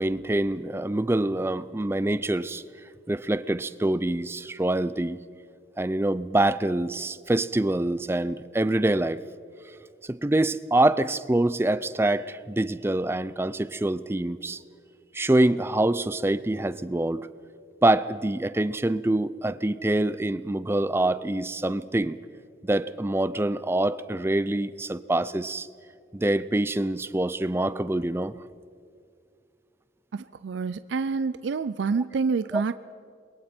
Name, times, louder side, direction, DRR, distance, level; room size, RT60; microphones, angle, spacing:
voice 1, 0.0-2.6 3.1-5.2 5.8-9.2 10.0-14.6 15.1-17.3 17.8-22.2 22.6-25.7 26.1-28.4 32.5-32.6, right 1 dB, 15° right, 15 dB, 0.4 m, -25 dB
voice 2, 30.1-32.7, right 4 dB, 85° right, 13 dB, 0.4 m, -27 dB
28.5 x 22.0 x 4.4 m, 2.3 s
head